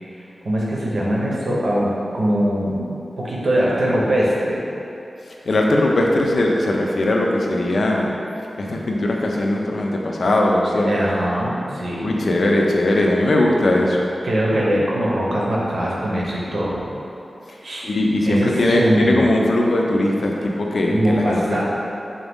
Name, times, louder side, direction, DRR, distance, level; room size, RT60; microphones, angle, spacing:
voice 1, 0.4-2.8 3.2-4.6 10.8-12.1 14.2-16.9 17.6-17.9 18.2-19.3 20.9-21.6, equal, 75° right, -5 dB, 0.7 m, -21 dB
voice 2, 5.4-8.2 8.6-10.9 12.0-14.1 17.8-21.6, left 1 dB, 70° left, -1 dB, 0.4 m, -19 dB
3.9 x 2.6 x 3.5 m, 2.8 s
wide cardioid pair, 80°, 0 cm